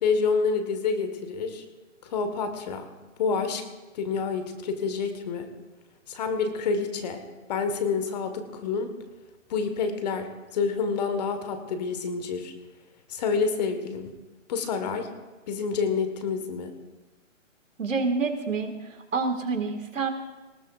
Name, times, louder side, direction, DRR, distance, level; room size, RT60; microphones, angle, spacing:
voice 1, 0.0-1.6 2.0-2.9 3.2-3.6 3.9-5.5 6.1-7.2 7.5-8.9 9.5-12.5 13.1-14.1 14.5-15.1 15.5-16.7, left 5 dB, 30° left, 7 dB, 1.5 m, -28 dB
voice 2, 17.8-18.7 19.1-20.1, right 4 dB, 75° right, 6 dB, 2.0 m, -27 dB
19.0 x 18.0 x 2.5 m, 1.1 s
hypercardioid pair, 150°, 39 cm